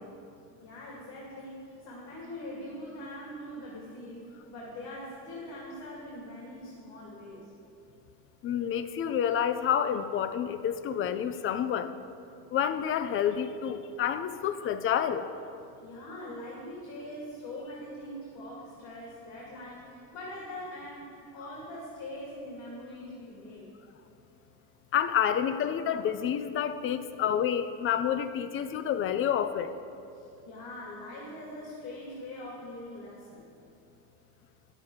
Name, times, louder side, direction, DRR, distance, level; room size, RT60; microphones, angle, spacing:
voice 1, 0.6-7.5 15.8-23.7 30.1-33.5, left 1 dB, 55° left, -5 dB, 2.4 m, -42 dB
voice 2, 8.4-11.9 12.5-15.2 24.9-29.7, left 9 dB, 30° left, 11 dB, 0.3 m, -29 dB
9.2 x 7.5 x 4.7 m, 2.6 s
supercardioid pair, 90°, 48 cm